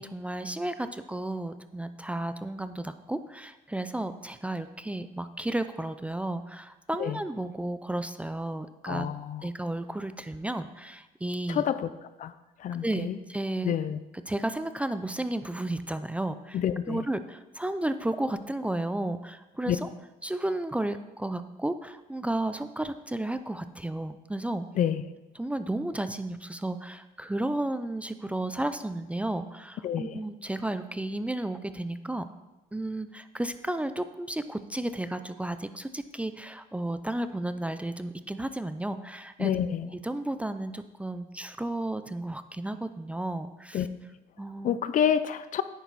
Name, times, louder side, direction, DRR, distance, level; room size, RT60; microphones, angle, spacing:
voice 1, 0.0-9.1 9.4-11.6 12.8-13.7 14.3-16.6 16.9-19.9 20.2-24.7 25.4-32.3 32.7-39.5 40.0-43.8 44.4-44.8, right 1 dB, 5° right, 11 dB, 0.5 m, -33 dB
voice 2, 8.9-9.4 11.5-11.9 12.2-12.3 12.6-13.2 13.6-14.0 16.5-17.0 19.7-19.8 24.7-25.0 29.8-30.2 39.4-39.9 43.7-43.9 44.6-45.6, left 9 dB, 50° left, 14 dB, 0.6 m, -28 dB
10.0 x 9.3 x 4.1 m, 1.0 s
cardioid pair, 110°, 17 cm